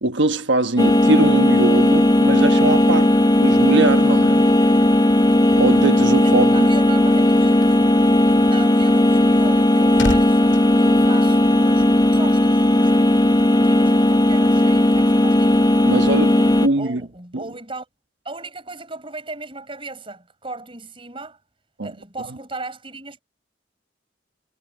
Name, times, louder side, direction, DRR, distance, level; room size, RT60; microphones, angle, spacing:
voice 1, 0.0-4.5 5.6-6.7 15.8-17.0 17.3-17.4 21.8-21.9, right 2 dB, 85° right, 1.3 m, -21 dB
sound 1, 0.8-16.7, left 1 dB, 20° left, 0.8 m, -16 dB
voice 2, 6.2-7.8 8.4-13.0 13.4-15.5 15.9-16.1 16.8-17.9 18.2-21.4 21.8-23.2, right 3 dB, 30° right, 6.1 m, -37 dB
sound 2, 9.5-11.9 12.2-12.5, left 1 dB, 85° left, 2.1 m, -32 dB
head